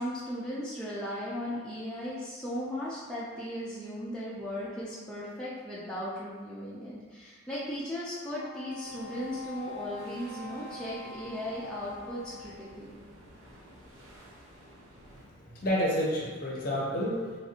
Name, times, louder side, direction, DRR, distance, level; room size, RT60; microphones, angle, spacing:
voice 1, 0.0-13.0, equal, 5° left, -8 dB, 0.4 m, -37 dB
Wind instrument woodwind instrument, 8.3-12.9, left 3 dB, 50° right, 0.8 m, -44 dB
sound 1, 8.8-15.3, equal, 85° right, 0.8 m, -54 dB
voice 2, 15.1-17.4, equal, 45° left, -3 dB, 0.6 m, -30 dB
3.1 x 2.6 x 2.7 m, 1.4 s
head